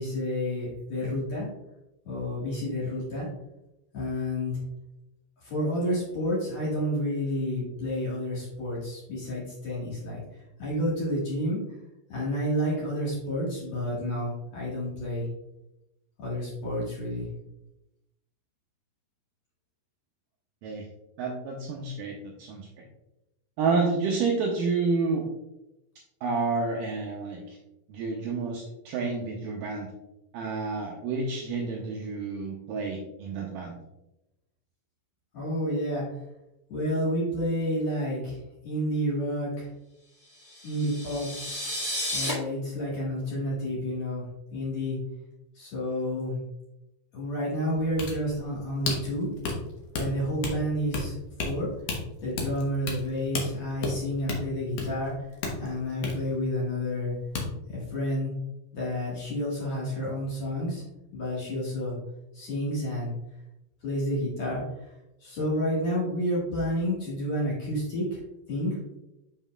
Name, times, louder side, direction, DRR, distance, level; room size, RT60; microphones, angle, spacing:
voice 1, 0.0-1.5 2.0-3.3 3.9-4.5 5.4-10.2 10.6-11.6 12.1-15.3 16.2-17.3 35.3-36.0 36.7-39.7 40.6-41.3 42.1-45.0 45.5-46.4 47.1-49.3 49.9-51.1 51.4-51.7 52.2-55.3 55.6-57.1 57.7-58.3 58.7-60.8 61.1-62.0 62.3-63.1 63.8-64.9 65.2-68.2 68.5-68.8, equal, 50° left, -6 dB, 2.4 m, -30 dB
voice 2, 21.2-22.8 23.6-25.3 26.2-27.6 27.9-29.9 30.3-33.8, right 4 dB, 90° right, 0 dB, 1.9 m, -29 dB
sound 1, 40.4-42.3, equal, 35° left, 0.8 m, -33 dB
sound 2, 47.7-57.1 57.3-57.5, left 3 dB, 90° left, 1.4 m, -33 dB
7.2 x 5.5 x 2.3 m, 0.90 s
omnidirectional pair, 4.6 m